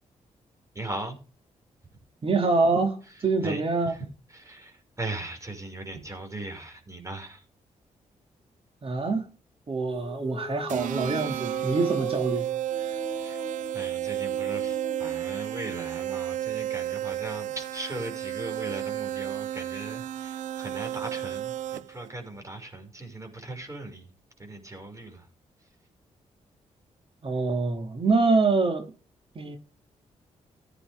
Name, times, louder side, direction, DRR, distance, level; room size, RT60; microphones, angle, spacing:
voice 1, 0.7-1.2 3.1-7.4 13.1-13.4 13.7-24.1 24.4-25.3, right 2 dB, 25° right, 6.1 m, -39 dB
voice 2, 2.2-3.9 8.8-9.3 9.7-12.5 27.2-28.8 29.3-29.6, right 3 dB, 45° right, 2.7 m, -25 dB
sound 1, 9.9-15.3, left 3 dB, 25° left, 2.6 m, -42 dB
sound 2, 10.7-22.1, right 12 dB, 85° right, 0.6 m, -32 dB
15.5 x 9.9 x 3.7 m
cardioid pair, 70°, 13 cm